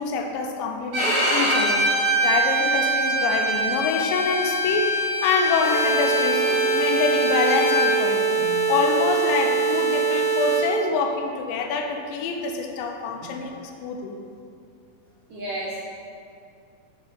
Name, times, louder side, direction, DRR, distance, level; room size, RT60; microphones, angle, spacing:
voice 1, 0.0-1.8 2.2-4.9 5.2-8.2 8.7-14.2, left 4 dB, 80° left, 3 dB, 2.2 m, -26 dB
Bowed string instrument, 0.9-7.9, equal, 55° right, 1.9 m, -24 dB
sound 1, 5.6-10.6, right 5 dB, 50° left, 1.8 m, -23 dB
voice 2, 8.4-8.7 13.2-13.4 15.3-15.7, right 1 dB, 85° right, -8 dB, 1.3 m, -34 dB
6.2 x 5.8 x 4.0 m, 2.4 s
omnidirectional pair, 4.1 m